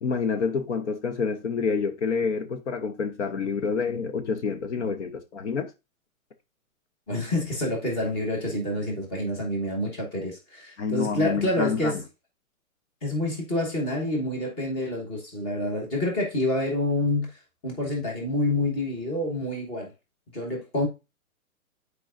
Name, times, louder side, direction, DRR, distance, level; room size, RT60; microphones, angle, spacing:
voice 1, 0.0-5.7 10.8-12.0, left 5 dB, 55° left, 0.9 m, -28 dB
voice 2, 7.1-12.0 13.0-17.3 17.6-19.9 20.3-20.9, left 1 dB, 15° left, 1.1 m, -27 dB
9.0 x 4.7 x 2.5 m
hypercardioid pair, 165°, 43 cm